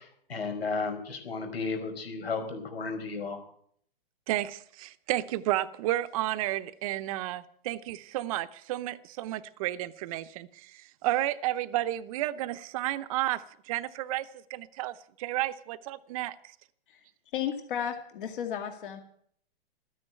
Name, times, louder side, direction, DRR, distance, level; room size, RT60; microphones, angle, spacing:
voice 1, 0.0-3.4, left 4 dB, 85° left, 5.0 m, -34 dB
voice 2, 4.3-16.3, right 15 dB, 35° right, 0.7 m, -32 dB
voice 3, 17.3-19.0, left 9 dB, 60° left, 2.1 m, -33 dB
13.5 x 9.8 x 8.9 m
hypercardioid pair, 140°, 30 cm